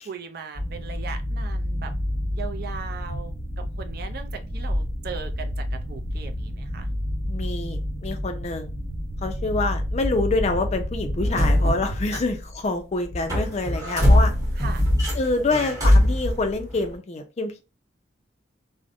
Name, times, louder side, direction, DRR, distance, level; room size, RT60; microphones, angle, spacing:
voice 1, 0.0-1.9 2.3-6.9 12.1-12.2 14.6-14.8, right 6 dB, 55° right, 0.4 m, -38 dB
sound 1, 0.5-12.7 13.0-16.9, left 1 dB, 20° right, 0.8 m, -25 dB
voice 2, 7.3-8.7 9.2-12.4 12.6-14.3 15.1-17.6, left 3 dB, 35° left, 0.4 m, -26 dB
2.6 x 2.1 x 2.5 m
head